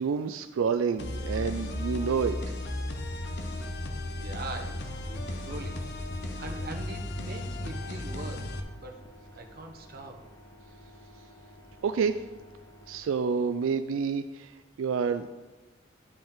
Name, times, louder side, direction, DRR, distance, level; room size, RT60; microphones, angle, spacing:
voice 1, 0.0-2.4 11.8-12.2 12.9-14.5 14.8-15.3, right 6 dB, 85° right, 9 dB, 0.4 m, -28 dB
sound 1, 1.0-8.6, left 1 dB, 60° left, 0.9 m, -35 dB
voice 2, 4.1-5.8 6.4-9.1 9.3-10.2, right 2 dB, 50° right, 3 dB, 1.0 m, -42 dB
sound 2, 4.5-13.0, equal, 15° left, 0.8 m, -53 dB
12.5 x 5.2 x 3.7 m, 1.2 s
head